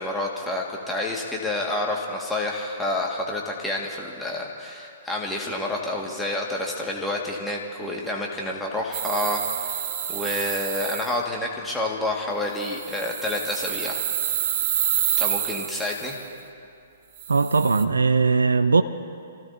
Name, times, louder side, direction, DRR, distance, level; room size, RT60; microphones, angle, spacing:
voice 1, 0.0-9.8 10.1-14.0 15.2-16.2, left 1 dB, 5° left, 1.9 m, -29 dB
sound 1, 8.9-11.1 12.6-16.2 17.2-17.8, right 10 dB, 45° right, 1.0 m, -28 dB
voice 2, 17.3-18.8, right 4 dB, 80° right, 0.6 m, -19 dB
28.5 x 16.0 x 2.8 m
figure-of-eight pair, 120°, 0 cm